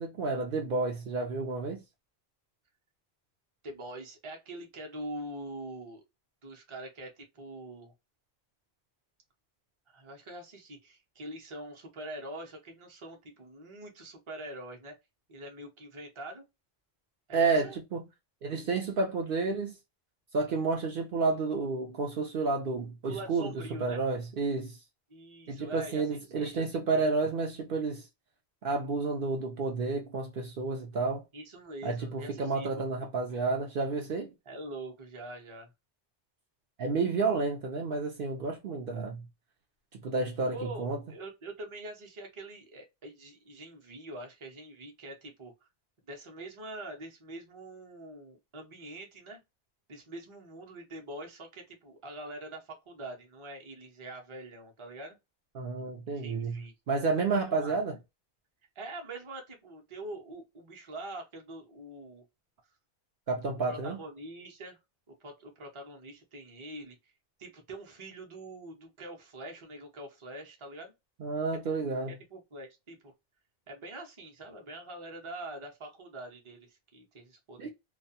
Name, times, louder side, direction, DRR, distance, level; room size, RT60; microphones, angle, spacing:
voice 1, 0.0-1.8 17.3-18.0 18.4-19.8 20.3-23.5 23.8-24.8 25.5-28.0 28.6-31.2 31.8-34.3 36.8-39.2 40.0-41.0 55.6-56.6 56.9-58.0 63.3-64.0 71.2-72.1 77.6-77.7, right 3 dB, 65° right, 0.7 m, -30 dB
voice 2, 3.6-6.0 6.4-7.9 9.9-15.0 15.3-16.4 17.3-17.8 23.0-24.0 25.1-26.6 26.9-27.0 31.3-32.8 34.5-35.7 40.5-45.5 46.1-49.4 49.9-55.2 56.1-56.7 57.6-57.8 58.8-62.2 63.7-64.8 65.1-67.1 67.4-70.9 72.1-73.1 73.7-77.7, right 1 dB, 35° right, 0.7 m, -44 dB
2.4 x 2.2 x 2.6 m
omnidirectional pair, 1.1 m